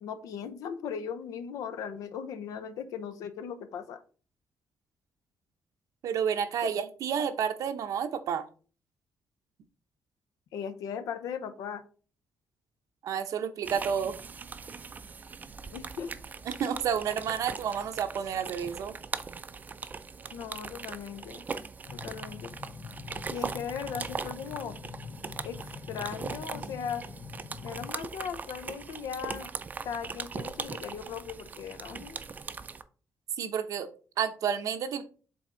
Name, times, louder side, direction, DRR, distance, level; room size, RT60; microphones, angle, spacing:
voice 1, 0.0-4.0 6.6-6.8 10.5-11.8 15.7-16.1 20.3-21.5 21.9-22.5 23.3-24.8 25.4-25.6 25.9-27.1 27.6-29.5 29.8-32.2, left 7 dB, 90° left, 11 dB, 0.7 m, -38 dB
voice 2, 6.0-8.5 13.0-14.1 16.5-18.9 33.4-33.9 34.2-35.0, right 8 dB, 70° right, 9 dB, 0.8 m, -30 dB
sound 1, 13.6-32.8, right 5 dB, 30° right, 0.4 m, -40 dB
sound 2, 21.8-27.9, left 6 dB, 50° left, 0.5 m, -45 dB
7.6 x 3.5 x 3.8 m, 0.39 s
cardioid pair, 135°, 6 cm